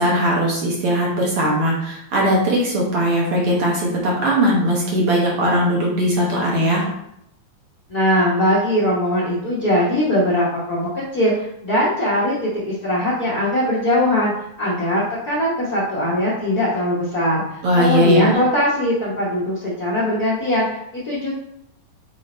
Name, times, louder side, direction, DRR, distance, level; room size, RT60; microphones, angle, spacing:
voice 1, 0.0-6.9 17.6-18.3, equal, 60° right, -3 dB, 1.9 m, -19 dB
voice 2, 7.9-14.3 14.6-17.4 17.7-21.3, left 1 dB, 50° left, -8 dB, 1.1 m, -20 dB
5.1 x 4.5 x 4.3 m, 0.77 s
omnidirectional pair, 3.4 m